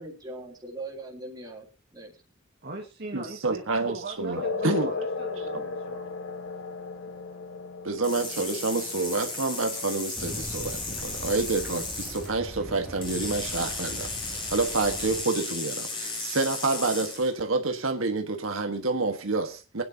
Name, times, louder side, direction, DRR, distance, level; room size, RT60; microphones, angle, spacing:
voice 1, 0.0-2.2, right 2 dB, 20° right, -1 dB, 3.4 m, -41 dB
voice 2, 2.6-6.1, right 2 dB, 55° right, 1 dB, 1.8 m, -40 dB
voice 3, 3.1-4.9 7.8-19.8, right 3 dB, 90° right, 5 dB, 1.5 m, -28 dB
sound 1, 4.4-11.4, left 3 dB, 90° left, 1.3 m, -36 dB
sound 2, 8.0-12.3 13.0-17.3, left 3 dB, 25° left, 3.4 m, -35 dB
sound 3, 10.1-15.2, equal, ahead, 2.5 m, -41 dB
23.5 x 9.6 x 2.8 m, 0.31 s
head